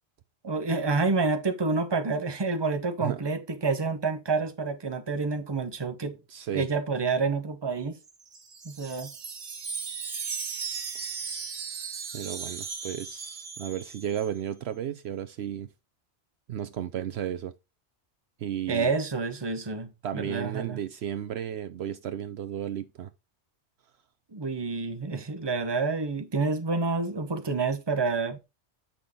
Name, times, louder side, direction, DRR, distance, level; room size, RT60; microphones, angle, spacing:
voice 1, 0.4-6.2 6.5-8.0 8.6-9.1 18.7-20.8 24.3-28.4, right 4 dB, 25° right, 0.9 m, -28 dB
voice 2, 6.3-6.7 12.1-15.7 16.5-17.5 18.4-18.9 20.0-23.1, right 10 dB, 70° right, 0.8 m, -33 dB
Wind chime, 8.1-14.3, right 5 dB, 45° right, 1.0 m, -37 dB
8.4 x 5.9 x 3.7 m
omnidirectional pair, 1.2 m